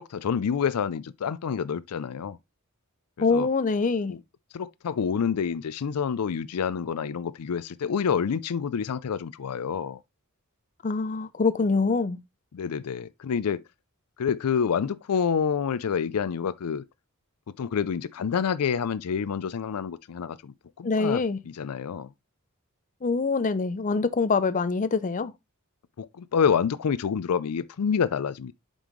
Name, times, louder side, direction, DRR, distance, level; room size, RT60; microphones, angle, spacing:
voice 1, 0.0-2.4 3.2-3.5 4.1-4.2 4.5-10.0 12.5-13.6 14.2-16.8 17.6-22.1 26.0-28.5, left 7 dB, 85° left, 0.4 m, -28 dB
voice 2, 3.2-4.2 10.8-12.2 20.8-21.4 23.0-25.3, left 4 dB, 35° left, 0.5 m, -24 dB
7.5 x 5.3 x 3.1 m
head